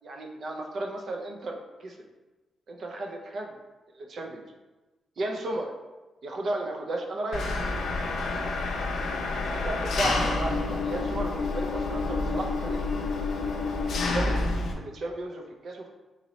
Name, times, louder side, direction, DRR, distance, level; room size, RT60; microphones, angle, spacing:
voice 1, 0.0-2.0 2.7-3.6 3.9-4.4 5.2-5.7 6.2-7.6 9.5-12.8 14.0-14.4 14.7-15.9, right 2 dB, 50° right, 2 dB, 0.5 m, -34 dB
Engine, 7.3-14.7, left 3 dB, 70° left, 0.5 m, -28 dB
3.9 x 2.7 x 3.0 m, 1.2 s
wide cardioid pair, 150°, 0 cm